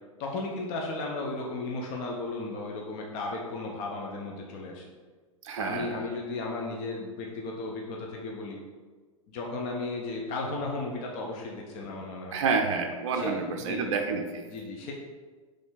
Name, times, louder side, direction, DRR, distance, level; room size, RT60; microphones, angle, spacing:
voice 1, 0.2-4.8 5.6-8.6 9.3-12.4 13.1-14.0 14.5-14.9, left 3 dB, 40° left, -1 dB, 0.7 m, -35 dB
voice 2, 5.4-6.0 12.3-14.5, right 5 dB, 60° right, 3 dB, 0.4 m, -29 dB
3.9 x 3.3 x 3.9 m, 1.4 s
figure-of-eight pair, 95°, 17 cm